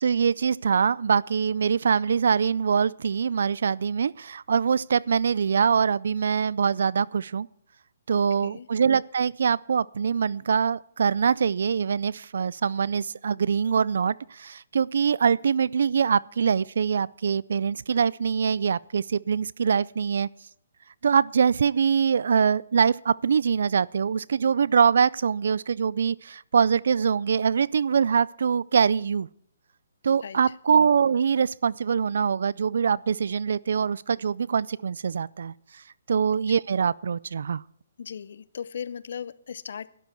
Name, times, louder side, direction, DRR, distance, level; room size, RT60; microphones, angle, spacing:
voice 1, 0.0-7.5 8.1-20.3 21.0-29.3 30.0-35.5 36.1-37.6, right 6 dB, 70° right, 0.4 m, -23 dB
voice 2, 38.0-39.9, left 7 dB, 65° left, 0.7 m, -37 dB
12.5 x 11.5 x 4.5 m
hypercardioid pair, 150°, 0 cm